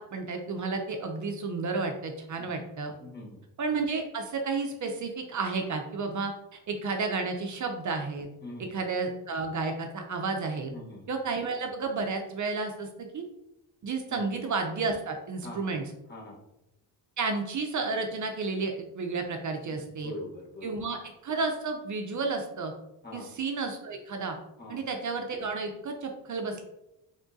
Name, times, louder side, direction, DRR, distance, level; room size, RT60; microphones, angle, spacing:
voice 1, 0.0-2.9 3.6-8.3 8.6-10.7 11.1-13.2 13.8-15.8 17.2-20.1 20.6-22.7 23.1-24.4 24.7-26.6, right 4 dB, 45° right, 4 dB, 0.6 m, -32 dB
voice 2, 3.0-3.4 8.4-8.7 10.7-11.1 14.1-14.2 15.4-15.7 16.1-16.4 19.7-20.8 23.0-23.3 24.6-24.8, left 1 dB, 25° left, -3 dB, 1.2 m, -43 dB
3.6 x 3.6 x 2.6 m, 0.88 s
cardioid pair, 100°, 40 cm